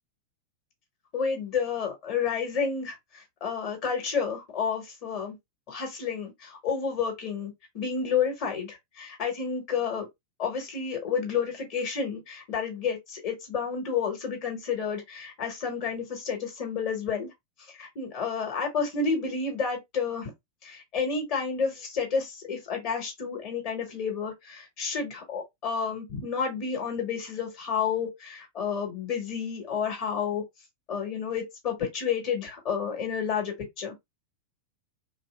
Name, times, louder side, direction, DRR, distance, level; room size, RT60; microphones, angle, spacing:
voice 1, 1.1-5.4 5.7-10.1 10.4-17.3 17.8-20.3 20.6-30.4 30.9-34.0, left 6 dB, 40° left, 1.4 m, -30 dB
3.1 x 2.5 x 2.3 m
figure-of-eight pair, 90°, 0 cm